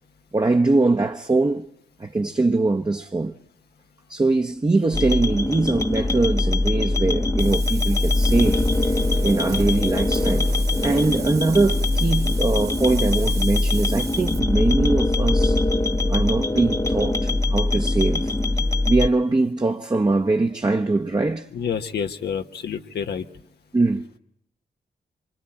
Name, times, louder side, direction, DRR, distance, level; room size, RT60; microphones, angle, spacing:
voice 1, 0.3-1.7 2.0-3.4 4.1-10.5 10.8-15.6 16.1-18.3 18.9-21.5 23.7-24.1, right 3 dB, 25° right, 1.1 m, -22 dB
sound 1, 4.9-19.1, left 2 dB, 20° left, 1.0 m, -22 dB
Wind, 7.4-14.4, right 5 dB, 85° right, 1.9 m, -36 dB
voice 2, 21.5-23.2, left 7 dB, 80° left, 1.3 m, -28 dB
25.5 x 25.0 x 8.8 m
cardioid pair, 60°, 17 cm